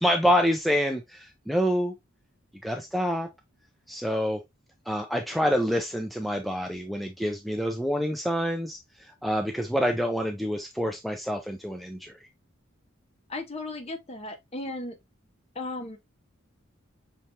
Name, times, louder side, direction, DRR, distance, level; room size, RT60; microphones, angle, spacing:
voice 1, 0.0-1.9 2.6-3.3 3.9-4.4 4.9-12.1, equal, ahead, 0.3 m, -27 dB
voice 2, 13.3-15.0 15.5-16.0, left 2 dB, 30° left, 0.8 m, -35 dB
5.8 x 3.3 x 2.7 m
head